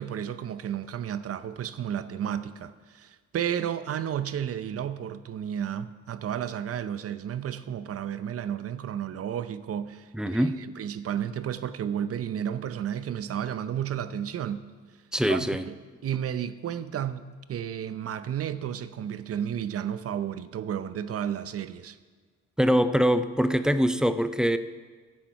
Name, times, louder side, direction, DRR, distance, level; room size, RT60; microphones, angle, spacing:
voice 1, 0.0-10.4 10.8-14.6 15.3-15.7 16.0-17.2 17.5-22.0, right 9 dB, 50° right, 0.7 m, -32 dB
voice 2, 10.1-10.6 15.1-15.6 22.6-24.6, equal, ahead, 0.5 m, -23 dB
13.0 x 7.4 x 5.7 m
cardioid pair, 90°, 30 cm